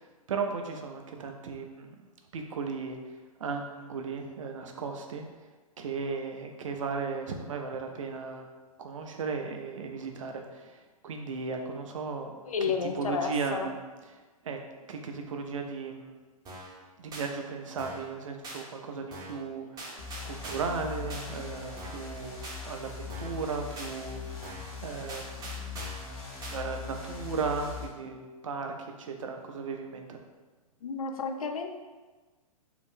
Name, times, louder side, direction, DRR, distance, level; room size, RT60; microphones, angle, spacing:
voice 1, 0.0-2.0 2.3-3.0 3.4-5.3 5.8-8.5 8.8-12.4 12.9-13.7 14.4-14.6 14.9-16.1 17.0-22.4 22.6-25.7 26.5-30.2, right 5 dB, 60° right, 4 dB, 0.5 m, -36 dB
voice 2, 12.5-13.7 30.8-31.7, left 5 dB, 70° left, 5 dB, 0.4 m, -31 dB
sound 1, 16.5-16.8 17.1-17.3 17.8-18.1 18.4-18.6 19.1-19.4 19.8-20.8 21.1-21.3 21.8-22.1 22.4-22.6 23.1-23.4 23.8-23.9 24.4-24.7 25.1-26.1 26.4-26.6, right 1 dB, 20° right, 0.8 m, -42 dB
sound 2, 20.0-27.8, left 6 dB, 45° left, 0.9 m, -41 dB
2.7 x 2.5 x 3.4 m, 1.3 s
figure-of-eight pair, 115°, 19 cm